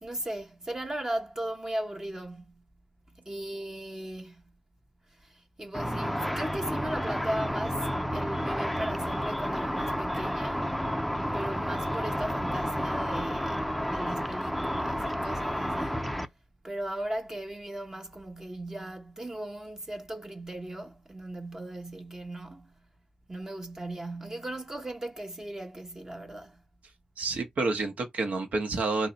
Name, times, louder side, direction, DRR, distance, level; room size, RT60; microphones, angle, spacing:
voice 1, 0.0-2.6 3.1-4.4 5.2-10.7 11.3-16.0 16.6-22.7 23.3-26.6, right 1 dB, 20° right, 0.9 m, -37 dB
Car / Traffic noise roadway noise / Engine, 5.7-16.3, equal, ahead, 0.5 m, -31 dB
voice 2, 27.2-29.1, right 3 dB, 70° right, 1.1 m, -29 dB
4.0 x 2.2 x 4.0 m
cardioid pair, 65°, 2 cm